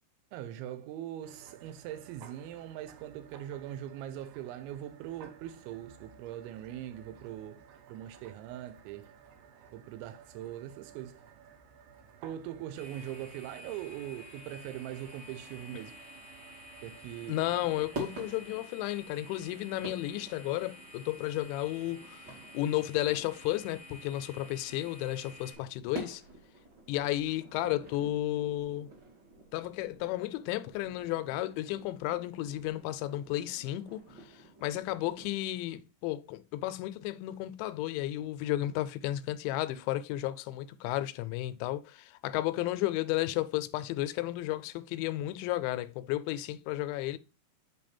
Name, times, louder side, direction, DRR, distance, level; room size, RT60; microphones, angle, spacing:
voice 1, 0.3-9.1 9.7-11.2 12.2-16.1 16.8-17.4, right 12 dB, 90° right, 3.0 m, -41 dB
sound 1, 1.2-18.6, right 7 dB, 75° right, 2.8 m, -56 dB
sound 2, 12.8-25.5, left 1 dB, 60° right, 1.6 m, -51 dB
voice 2, 17.3-22.2 22.5-26.2 26.9-28.9 29.5-34.0 34.6-47.2, left 15 dB, 85° left, 2.8 m, -33 dB
sound 3, 17.4-35.3, right 2 dB, 40° right, 1.7 m, -49 dB
8.9 x 3.3 x 4.2 m
omnidirectional pair, 5.3 m